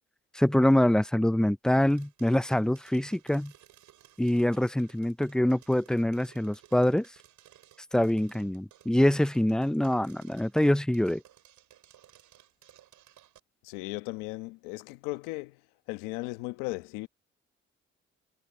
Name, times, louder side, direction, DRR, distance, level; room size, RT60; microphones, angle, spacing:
voice 1, 0.3-3.5 4.2-7.1 7.9-11.2, left 1 dB, ahead, 0.4 m, -25 dB
sound 1, 1.9-13.4, right 12 dB, 70° right, 7.2 m, -58 dB
voice 2, 13.6-15.6 15.9-17.1, left 22 dB, 85° left, 1.3 m, -36 dB
hypercardioid pair, 50°, 31 cm